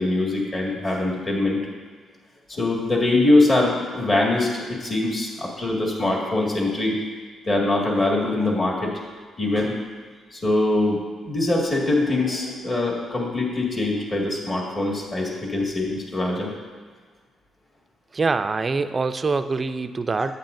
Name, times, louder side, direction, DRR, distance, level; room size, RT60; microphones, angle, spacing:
voice 1, 0.0-1.6 2.5-7.0 7.5-8.9 9.4-9.7 10.3-11.0 11.2-16.5 20.2-20.3, left 2 dB, 35° left, -3 dB, 1.9 m, -23 dB
voice 2, 18.1-20.3, right 4 dB, 30° right, 11 dB, 0.3 m, -24 dB
8.8 x 8.2 x 2.6 m, 1.5 s
cardioid pair, 90°, 0 cm